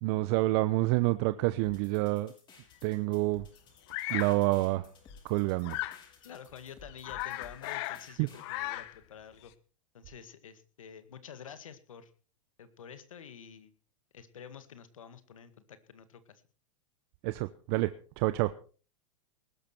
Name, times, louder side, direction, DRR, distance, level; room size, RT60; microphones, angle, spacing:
voice 1, 0.0-2.3 2.8-3.5 4.1-4.9 5.2-5.8 8.2-8.3 17.2-18.5, right 20 dB, 50° right, 12 dB, 0.9 m, -28 dB
sound 1, 1.6-8.5, left 4 dB, 30° left, 6.6 m, -55 dB
Bird vocalization bird call bird song, 3.9-4.4 5.6-6.0 6.5-6.6 6.9-8.1 8.3-9.0, left 17 dB, 55° left, 1.2 m, -36 dB
voice 2, 6.2-9.5 9.9-12.1 12.6-13.7 14.1-16.4, left 8 dB, 80° left, 12 dB, 2.0 m, -49 dB
20.0 x 12.0 x 4.5 m, 0.39 s
hypercardioid pair, 110°, 17 cm